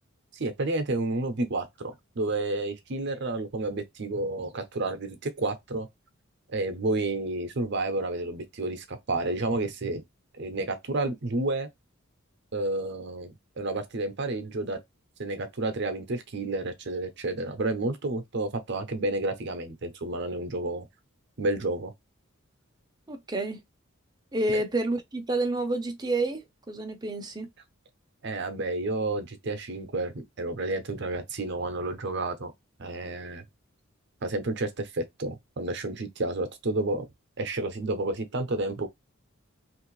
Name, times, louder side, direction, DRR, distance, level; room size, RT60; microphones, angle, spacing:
voice 1, 0.3-5.9 6.5-10.0 10.4-11.7 12.5-14.8 15.2-20.9 21.4-21.9 24.5-24.6 28.2-32.5 32.8-33.4 34.2-37.1 37.4-38.9, right 2 dB, 55° right, 0.7 m, -30 dB
voice 2, 23.1-23.6 24.3-27.5, right 2 dB, 20° right, 0.7 m, -29 dB
3.1 x 2.6 x 3.1 m
head